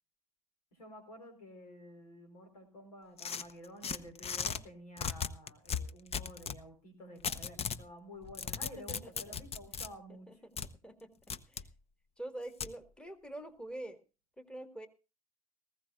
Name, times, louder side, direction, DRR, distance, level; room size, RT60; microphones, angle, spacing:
voice 1, 0.7-10.4, equal, 85° left, 8 dB, 4.5 m, -51 dB
sound 1, 3.2-4.6 5.0-6.6 7.2-7.8 8.2-9.9 10.6-10.7 11.3-11.7 12.6-12.7, left 7 dB, 30° left, 0.9 m, -37 dB
voice 2, 8.6-9.4 10.1-10.6 10.8-11.1 11.5-11.7 12.2-14.0 14.4-14.9, right 1 dB, 5° left, 10 dB, 1.9 m, -46 dB
19.0 x 15.5 x 2.5 m, 0.31 s
hypercardioid pair, 75°, 19 cm